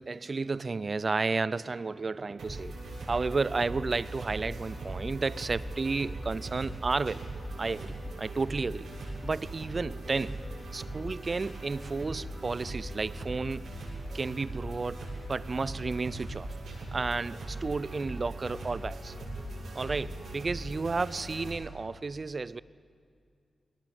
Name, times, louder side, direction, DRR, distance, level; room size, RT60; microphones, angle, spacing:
voice 1, 0.0-2.8 3.1-7.3 7.6-8.9 9.2-10.4 10.7-13.7 14.1-16.5 16.9-19.1 19.7-22.6, right 4 dB, 45° right, 19 dB, 0.5 m, -32 dB
sound 1, 2.4-21.5, right 1 dB, 80° right, 7.1 m, -39 dB
21.0 x 18.5 x 7.6 m, 2.3 s
cardioid pair, 50°, 0 cm